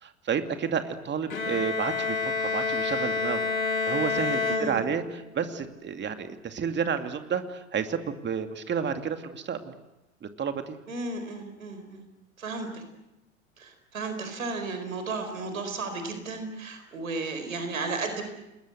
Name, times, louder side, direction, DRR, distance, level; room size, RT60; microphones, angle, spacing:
voice 1, 0.0-3.5 3.9-9.7 10.2-10.8, right 7 dB, 25° right, 7 dB, 2.5 m, -31 dB
Bowed string instrument, 1.3-5.3, left 4 dB, 80° left, 2.1 m, -29 dB
voice 2, 4.4-4.8 10.9-12.0 12.4-12.8 13.6-18.2, right 3 dB, 80° right, 7 dB, 4.5 m, -34 dB
29.5 x 20.5 x 8.0 m, 0.96 s
figure-of-eight pair, 80°, 40 cm